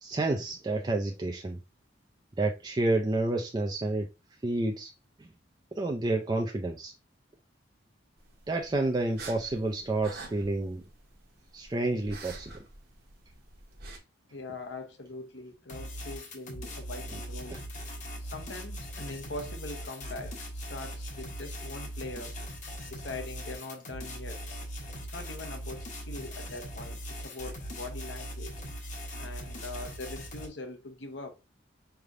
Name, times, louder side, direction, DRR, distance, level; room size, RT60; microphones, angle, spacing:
voice 1, 0.0-1.6 2.4-4.1 4.4-4.9 5.2-5.3 5.7-6.9 8.5-10.8 11.5-12.5 17.1-17.2 17.5-17.6, right 2 dB, 20° right, 0.4 m, -29 dB
sound 1, 8.2-14.0, right 3 dB, 55° right, 1.0 m, -48 dB
voice 2, 14.3-17.6 18.2-22.4 22.9-24.4 25.1-28.5 29.2-31.3, left 2 dB, 70° left, 0.9 m, -42 dB
sound 2, 15.7-30.5, equal, 40° left, 1.1 m, -40 dB
4.7 x 3.3 x 2.5 m
head